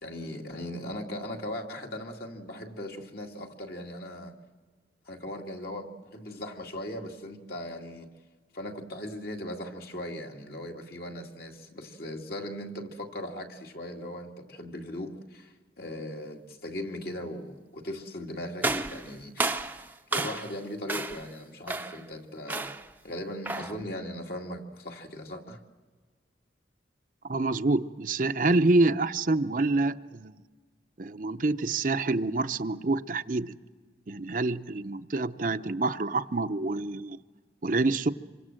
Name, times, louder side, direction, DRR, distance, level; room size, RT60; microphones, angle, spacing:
voice 1, 0.0-4.3 5.1-8.1 8.5-19.7 20.1-22.7 23.0-25.6, left 1 dB, 55° left, 2 dB, 2.3 m, -39 dB
sound 1, 18.6-20.6 20.9-21.3 21.7-22.1 22.5-22.9 23.4-23.8, right 2 dB, 10° right, 0.7 m, -32 dB
voice 2, 27.3-30.3 31.0-33.6 34.1-37.2 37.6-38.1, right 2 dB, 45° right, 9 dB, 0.7 m, -27 dB
26.5 x 24.0 x 7.6 m, 1.4 s
head